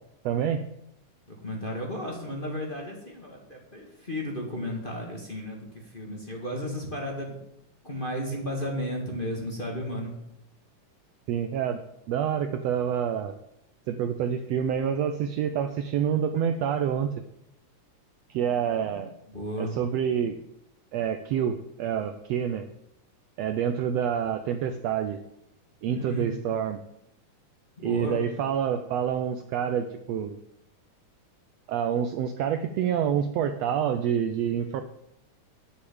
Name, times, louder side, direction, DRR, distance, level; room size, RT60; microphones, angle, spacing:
voice 1, 0.2-0.7 11.3-11.8 12.1-13.3 13.9-17.2 18.3-19.1 19.6-20.3 20.9-22.7 23.4-25.2 25.8-26.8 27.8-30.4 31.7-34.8, right 8 dB, 90° right, 8 dB, 1.4 m, -27 dB
voice 2, 1.3-7.4 7.8-10.1 19.3-19.8 25.9-26.4 27.8-28.2, equal, 20° left, -1 dB, 1.7 m, -34 dB
9.4 x 7.2 x 8.6 m, 0.80 s
omnidirectional pair, 3.7 m